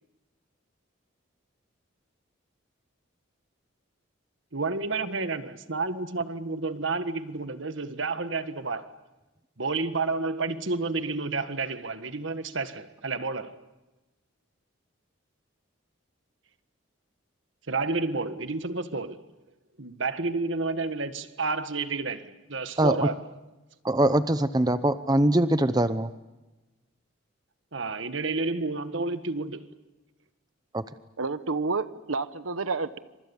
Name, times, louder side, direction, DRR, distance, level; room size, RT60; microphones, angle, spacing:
voice 1, 4.5-8.9 9.6-13.6 17.7-19.2 19.8-23.2 27.7-29.7, right 3 dB, 65° right, 1.6 m, -30 dB
voice 2, 22.8-23.1 23.8-26.1 30.7-30.8, right 1 dB, 20° right, 0.8 m, -22 dB
voice 3, 31.2-33.0, right 4 dB, 80° right, 1.1 m, -29 dB
28.5 x 26.0 x 7.2 m
head